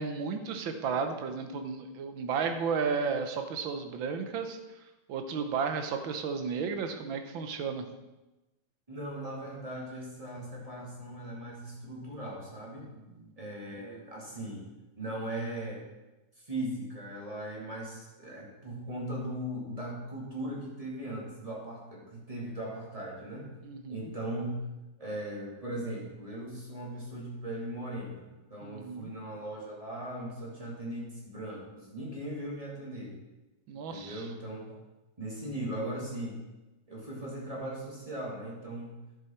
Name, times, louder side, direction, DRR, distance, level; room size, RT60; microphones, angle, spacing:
voice 1, 0.0-4.6 5.1-7.9 12.9-13.3 13.9-14.0 23.6-24.1 28.6-29.1 33.7-34.3, right 5 dB, 90° right, 7 dB, 1.7 m, -33 dB
voice 2, 8.9-12.9 13.4-14.7 15.0-15.8 16.4-23.5 23.9-24.6 25.0-33.2 33.9-34.8 35.2-36.4 36.9-39.0, right 1 dB, 20° right, -3 dB, 2.4 m, -38 dB
11.0 x 6.6 x 4.5 m, 1.0 s
omnidirectional pair, 2.1 m